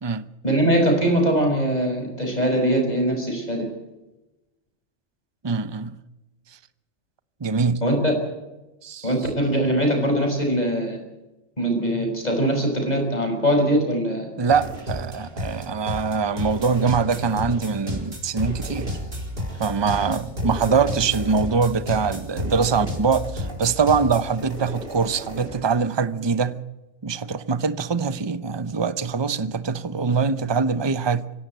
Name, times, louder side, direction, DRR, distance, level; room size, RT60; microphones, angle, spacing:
voice 1, 0.4-3.7 7.8-8.1 9.0-11.0 11.6-14.3, right 1 dB, 35° left, 6.0 m, -22 dB
voice 2, 5.4-6.0 7.4-7.8 8.8-9.1 14.4-19.0 19.6-26.6 27.0-31.3, right 5 dB, 25° right, 0.7 m, -23 dB
sound 1, 14.5-25.6, equal, 55° right, 4.2 m, -32 dB
24.5 x 16.5 x 8.0 m
omnidirectional pair, 1.2 m